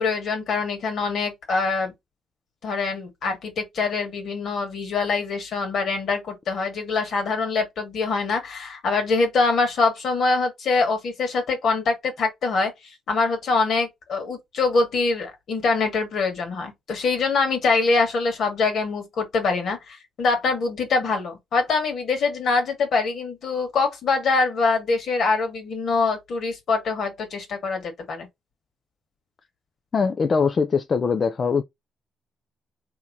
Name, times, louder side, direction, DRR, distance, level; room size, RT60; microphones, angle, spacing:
voice 1, 0.0-1.9 2.6-12.7 13.1-28.3, left 4 dB, 65° left, 1.7 m, -24 dB
voice 2, 29.9-31.6, left 5 dB, 40° left, 0.4 m, -22 dB
3.6 x 3.0 x 2.6 m
cardioid pair, 90°, 0 cm